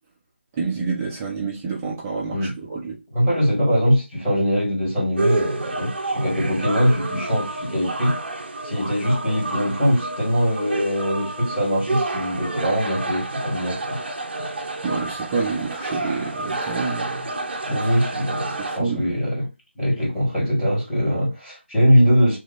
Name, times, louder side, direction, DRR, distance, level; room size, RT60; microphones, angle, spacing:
voice 1, 0.6-3.0 14.8-17.3 17.7-17.9 18.6-19.2, right 4 dB, 15° right, 0.9 m, -28 dB
voice 2, 3.1-8.2 8.6-14.0 17.7-19.5 19.8-22.4, equal, 5° left, 2.2 m, -22 dB
sound 1, 5.2-18.8, right 2 dB, 55° right, 0.8 m, -29 dB
3.2 x 3.2 x 4.0 m
figure-of-eight pair, 170°, 7 cm